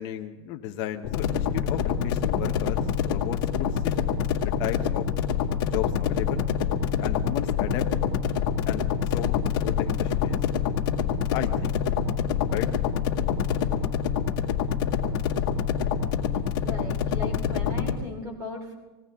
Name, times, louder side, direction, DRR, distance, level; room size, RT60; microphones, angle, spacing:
voice 1, 0.0-4.0 4.6-5.1 5.6-6.5 7.0-7.9 8.6-8.9 9.1-10.4 11.3-11.8 12.5-12.7, left 11 dB, 35° left, 5 dB, 0.9 m, -34 dB
sound 1, 1.0-17.9, left 7 dB, 50° left, 1.9 m, -26 dB
voice 2, 16.6-18.7, left 2 dB, 25° right, 3 dB, 2.9 m, -37 dB
21.0 x 18.0 x 3.6 m, 1.2 s
supercardioid pair, 175°, 14 cm